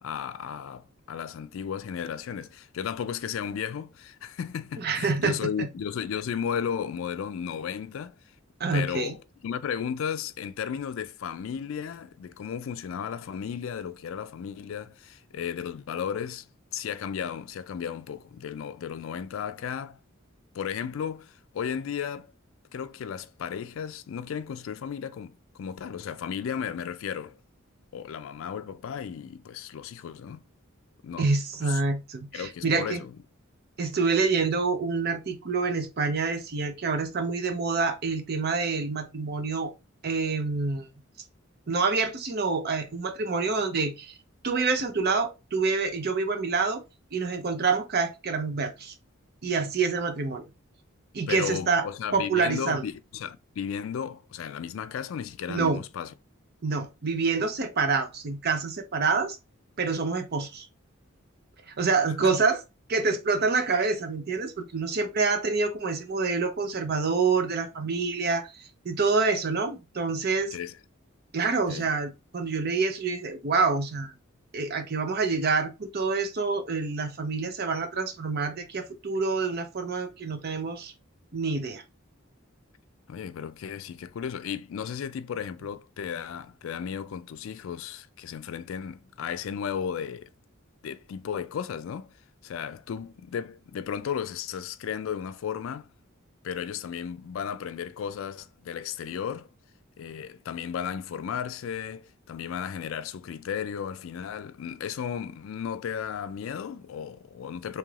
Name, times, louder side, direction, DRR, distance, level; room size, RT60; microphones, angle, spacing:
voice 1, 0.0-8.2 8.7-16.5 16.7-20.0 20.5-22.3 22.7-27.4 27.9-30.4 31.0-31.3 31.7-31.8 32.3-33.1 51.3-56.1 62.2-62.3 70.5-70.8 71.7-71.9 83.1-90.3 90.8-92.1 92.4-95.9 96.4-99.5 100.0-107.8, left 7 dB, 70° left, 0.3 m, -34 dB
voice 2, 4.8-5.7 8.6-9.1 31.2-33.0 33.8-39.7 40.0-40.9 41.7-44.1 44.4-46.8 47.1-48.9 49.4-50.4 51.1-51.8 52.1-52.8 55.5-55.8 56.6-59.4 59.8-60.7 61.7-62.6 62.9-70.6 71.3-74.1 74.5-80.9 81.3-81.8, right 4 dB, 50° right, 0.6 m, -27 dB
3.2 x 2.9 x 2.4 m
head